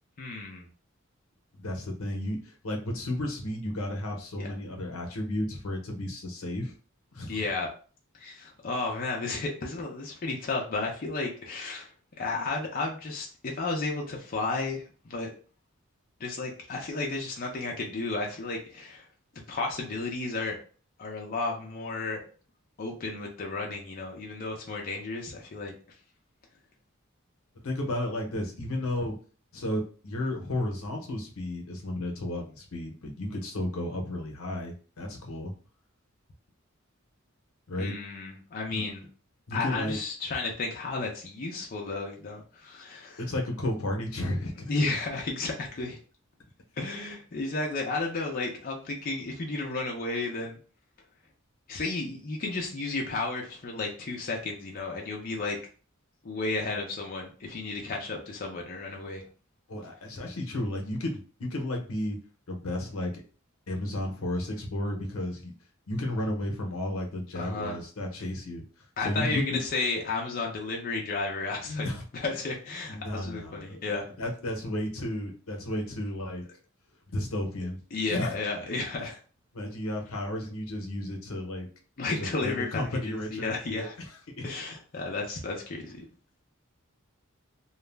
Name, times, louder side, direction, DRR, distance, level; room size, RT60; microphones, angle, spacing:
voice 1, 0.2-0.6 4.4-4.5 7.3-7.7 8.2-11.9 12.2-15.3 16.2-19.0 19.3-20.6 21.0-22.2 22.8-25.7 37.8-39.1 39.5-43.2 44.7-46.0 46.8-50.6 51.7-55.6 56.2-59.2 67.3-67.8 69.0-71.9 72.2-74.1 77.9-79.2 82.0-84.0 84.4-86.1, left 3 dB, 45° left, 0 dB, 0.5 m, -33 dB
voice 2, 1.6-6.7 7.1-7.4 27.6-29.2 29.5-35.5 37.7-37.9 38.7-38.8 39.5-40.0 43.2-44.7 59.7-62.2 62.5-63.2 63.7-65.5 65.9-68.6 69.0-69.6 71.7-72.0 72.3-72.4 72.9-76.4 77.1-77.8 78.1-78.3 79.5-81.7 82.2-84.6, left 1 dB, 85° left, 1 dB, 0.7 m, -33 dB
2.3 x 2.0 x 3.3 m, 0.39 s
head